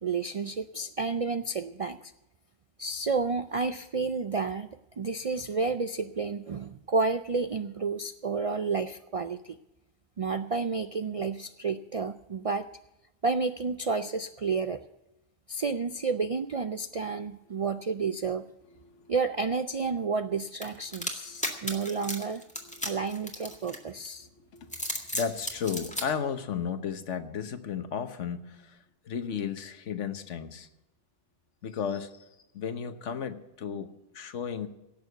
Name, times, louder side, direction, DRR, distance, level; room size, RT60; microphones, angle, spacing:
voice 1, 0.0-2.1 2.8-4.7 5.0-9.6 10.2-12.7 13.2-14.8 15.5-18.5 19.1-22.4 22.8-24.3, right 4 dB, 60° right, 10 dB, 0.3 m, -30 dB
voice 2, 18.8-19.1 20.9-21.8 22.6-22.9 24.2-24.8 25.1-28.8 29.0-30.7 31.6-32.2 32.5-34.7, left 7 dB, 85° left, 10 dB, 1.4 m, -35 dB
sound 1, 20.6-24.1 24.6-26.1, equal, 5° left, 1.9 m, -34 dB
17.5 x 6.9 x 8.0 m, 0.98 s
omnidirectional pair, 1.2 m